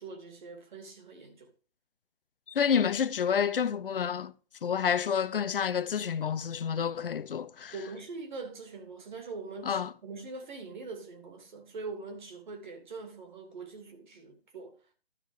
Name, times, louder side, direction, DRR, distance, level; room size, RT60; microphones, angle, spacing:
voice 1, 0.0-1.5 7.7-14.9, right 3 dB, 50° right, 2.6 m, -43 dB
voice 2, 2.5-4.3 4.6-7.7 9.7-9.9, left 7 dB, 60° left, 0.8 m, -29 dB
12.5 x 4.5 x 4.8 m
hypercardioid pair, 155°, 31 cm